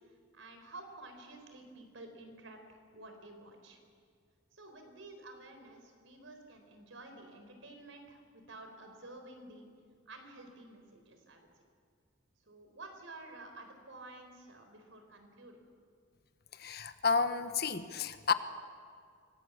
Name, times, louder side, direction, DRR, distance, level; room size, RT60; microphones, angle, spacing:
voice 1, 0.0-3.8 4.5-9.7 10.1-11.5 12.5-15.7, right 2 dB, 85° right, 5 dB, 4.3 m, -51 dB
voice 2, 16.5-18.3, left 5 dB, 55° left, 10 dB, 1.2 m, -31 dB
25.5 x 18.0 x 8.5 m, 2.1 s
head